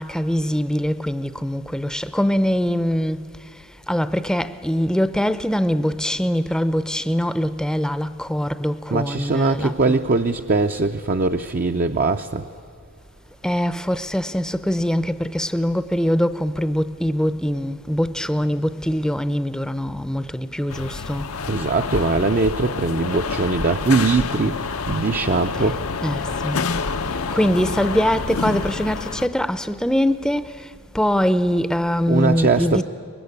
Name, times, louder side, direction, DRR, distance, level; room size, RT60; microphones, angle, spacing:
voice 1, 0.0-3.3 3.9-10.0 13.4-21.4 26.0-26.6 27.3-32.8, equal, 5° left, 0.6 m, -23 dB
voice 2, 8.9-12.5 21.5-25.8 32.1-32.8, right 3 dB, 45° right, 0.6 m, -21 dB
sound 1, 20.7-29.3, left 4 dB, 85° left, 0.8 m, -28 dB
24.0 x 21.5 x 9.7 m
head